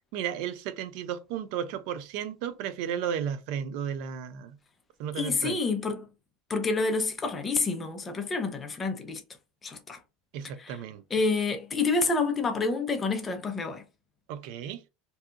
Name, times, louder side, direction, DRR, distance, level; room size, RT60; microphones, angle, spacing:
voice 1, 0.1-4.6 5.0-5.6 10.3-11.0 14.3-14.8, right 8 dB, 60° right, 0.4 m, -34 dB
voice 2, 5.2-6.1 6.5-9.2 9.6-10.0 10.6-10.8 11.1-13.8, left 3 dB, 20° left, 0.5 m, -28 dB
2.7 x 2.3 x 2.4 m
supercardioid pair, 145°, 0 cm